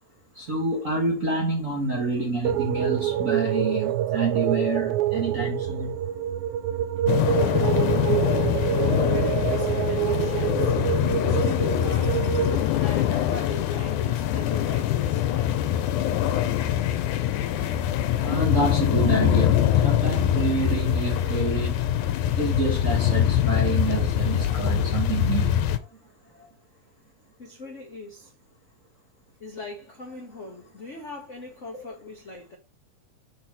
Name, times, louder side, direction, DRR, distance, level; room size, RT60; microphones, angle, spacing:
voice 1, 0.3-6.0 17.5-17.6 18.2-21.8 22.4-25.6, right 3 dB, 45° right, 1.0 m, -28 dB
sound 1, 2.4-12.6, right 11 dB, 85° right, 1.9 m, -26 dB
sound 2, 7.1-25.8, left 11 dB, 90° left, 2.2 m, -23 dB
voice 2, 8.9-12.3 12.7-15.7 27.4-28.3 29.4-32.6, left 3 dB, 70° left, 0.6 m, -39 dB
6.2 x 4.2 x 4.6 m
omnidirectional pair, 3.4 m